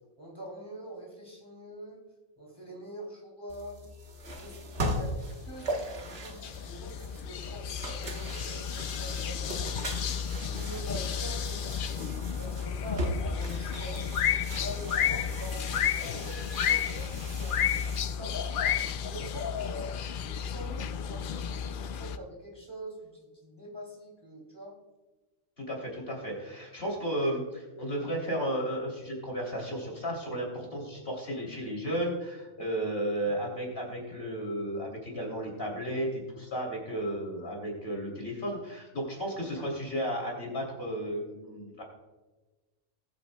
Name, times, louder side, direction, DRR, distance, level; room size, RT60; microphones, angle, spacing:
voice 1, 0.2-2.0 2.4-3.8 4.3-5.2 5.5-9.6 10.3-11.7 12.4-14.2 14.5-17.8 18.2-18.6 19.0-19.8 20.1-24.8 33.2-33.3, right 1 dB, 20° right, -2 dB, 2.6 m, -44 dB
sound 1, 3.5-18.2, right 1 dB, 50° right, 1.5 m, -39 dB
sound 2, 5.5-22.2, left 8 dB, 65° left, 0.5 m, -32 dB
voice 2, 25.6-41.8, right 1 dB, 45° left, -1 dB, 3.2 m, -34 dB
20.0 x 8.6 x 2.2 m, 1.2 s
omnidirectional pair, 1.4 m